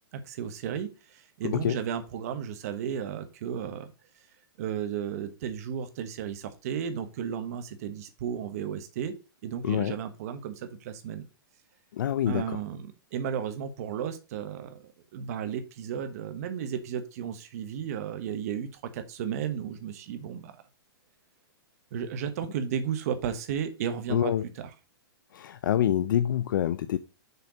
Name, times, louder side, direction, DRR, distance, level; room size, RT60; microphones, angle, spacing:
voice 1, 0.1-3.9 4.6-9.1 9.4-11.3 12.3-20.5 21.9-24.7, right 8 dB, 40° right, 1.2 m, -34 dB
voice 2, 9.6-9.9 11.9-12.6 24.1-24.4 25.3-27.0, left 10 dB, 55° left, 0.5 m, -26 dB
6.8 x 4.4 x 5.0 m
hypercardioid pair, 165°, 12 cm